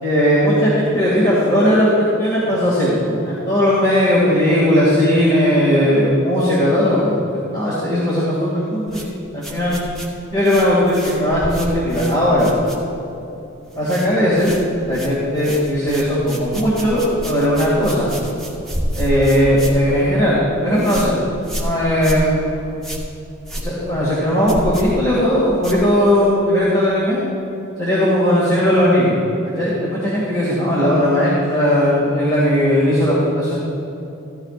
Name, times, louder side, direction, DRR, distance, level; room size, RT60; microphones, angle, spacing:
voice 1, 0.0-9.8 10.3-12.5 13.8-14.5 14.9-18.1 19.0-21.1 21.6-22.8 23.6-27.2 27.8-29.1 29.6-33.6, equal, 20° left, -8 dB, 2.3 m, -17 dB
sound 1, 8.9-13.2 13.5-14.1 14.4-26.3, equal, ahead, 1.5 m, -30 dB
15.0 x 13.0 x 2.5 m, 2.9 s
head